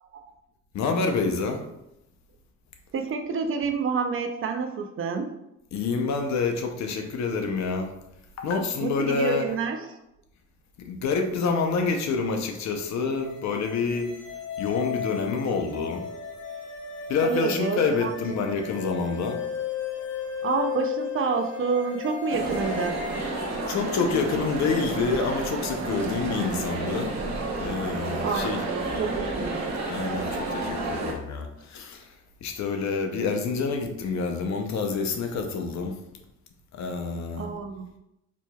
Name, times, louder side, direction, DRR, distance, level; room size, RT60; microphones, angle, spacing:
voice 1, 0.7-1.7 5.7-7.9 8.4-9.6 10.8-14.1 14.6-16.1 17.1-19.4 23.7-27.2 27.6-28.6 29.9-32.1 32.4-36.0 36.7-37.5, left 4 dB, 65° left, 4 dB, 0.7 m, -27 dB
voice 2, 2.9-5.3 8.8-9.8 17.2-18.1 20.4-23.0 28.2-29.7 37.4-37.8, right 5 dB, 45° right, 5 dB, 0.5 m, -28 dB
sound 1, 13.1-23.3, left 7 dB, 85° left, 1.2 m, -35 dB
sound 2, 22.3-31.1, right 2 dB, 65° right, 0.9 m, -30 dB
4.4 x 3.0 x 2.2 m, 0.84 s
cardioid pair, 90°, 30 cm